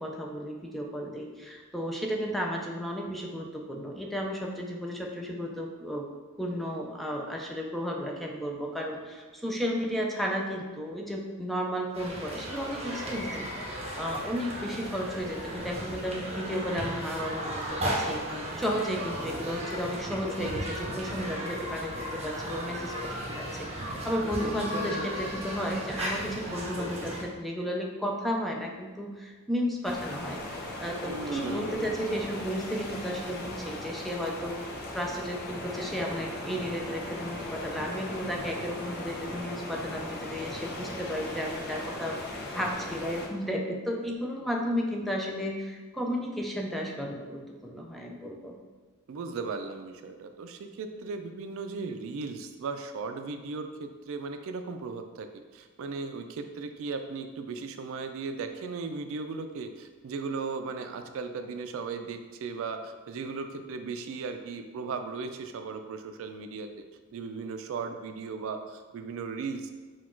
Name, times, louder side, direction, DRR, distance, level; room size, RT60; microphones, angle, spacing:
voice 1, 0.0-6.1 6.4-30.4 30.8-48.5, equal, ahead, 0 dB, 0.4 m, -33 dB
sound 1, 11.9-27.2, equal, 30° right, 0.8 m, -35 dB
sound 2, 29.8-43.3, left 1 dB, 50° left, 0.6 m, -38 dB
voice 2, 31.0-32.0 49.1-66.7 67.1-69.7, right 4 dB, 70° right, 7 dB, 0.3 m, -37 dB
4.1 x 2.3 x 4.3 m, 1.4 s
head